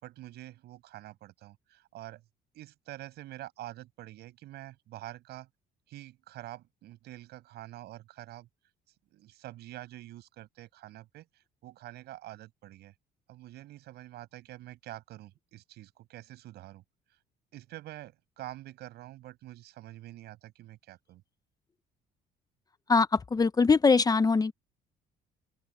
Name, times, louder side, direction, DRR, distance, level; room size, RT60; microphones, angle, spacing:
voice 1, 0.0-2.2 2.5-5.5 5.9-8.5 9.1-12.9 13.3-16.8 17.5-21.2, right 15 dB, 75° right, 7.3 m, -46 dB
voice 2, 22.9-24.5, left 4 dB, 20° left, 0.9 m, -22 dB
open air
cardioid pair, 110°, 17 cm